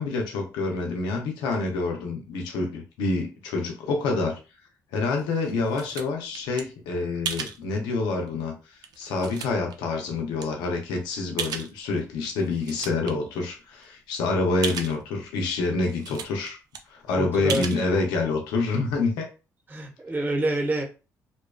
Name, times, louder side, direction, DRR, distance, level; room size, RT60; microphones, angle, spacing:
voice 1, 0.0-4.4 4.9-8.5 9.0-16.6 16.9-19.3, left 3 dB, 85° left, 2 dB, 0.7 m, -27 dB
sound 1, 5.1-6.6 7.2-7.6 8.3-8.4 8.8-9.8 10.4-10.5 11.4-12.0 12.4-13.1 13.5-13.6 13.8-13.9 14.6-15.0 15.5-15.6 15.8-16.5 16.7-16.8 17.5-17.8, right 6 dB, 65° right, 0.5 m, -34 dB
voice 2, 17.1-17.7 19.7-20.8, right 2 dB, 25° right, 1 dB, 1.0 m, -27 dB
2.7 x 2.3 x 2.3 m, 0.31 s
supercardioid pair, 55°, 7 cm